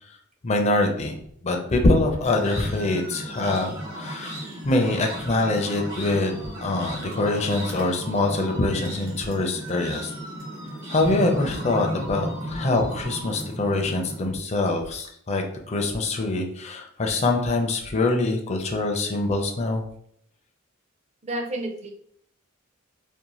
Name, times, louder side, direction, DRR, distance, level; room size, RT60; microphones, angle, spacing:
voice 1, 0.4-1.2 1.4-10.1 10.9-19.8, left 2 dB, 35° left, 2 dB, 0.4 m, -24 dB
sound 1, 2.2-14.3, equal, 70° right, 1.0 m, -35 dB
voice 2, 21.2-21.9, right 1 dB, 35° right, 3 dB, 0.5 m, -30 dB
2.6 x 2.1 x 2.9 m, 0.65 s
head